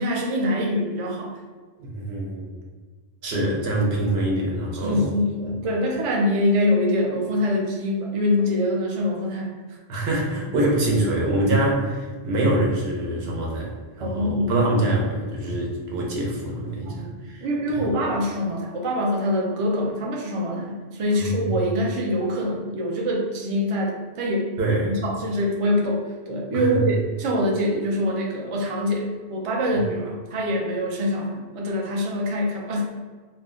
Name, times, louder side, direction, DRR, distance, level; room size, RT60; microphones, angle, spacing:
voice 1, 0.0-1.4 3.3-3.4 4.7-9.8 14.0-14.5 16.9-17.1 17.4-24.5 24.8-32.9, left 1 dB, 50° right, -1 dB, 0.4 m, -24 dB
voice 2, 1.8-2.5 3.2-5.1 9.9-13.7 14.0-17.8 21.2-21.5 24.6-24.9 26.5-26.7, right 1 dB, 75° right, -2 dB, 0.9 m, -24 dB
2.4 x 2.0 x 3.5 m, 1.4 s
omnidirectional pair, 1.1 m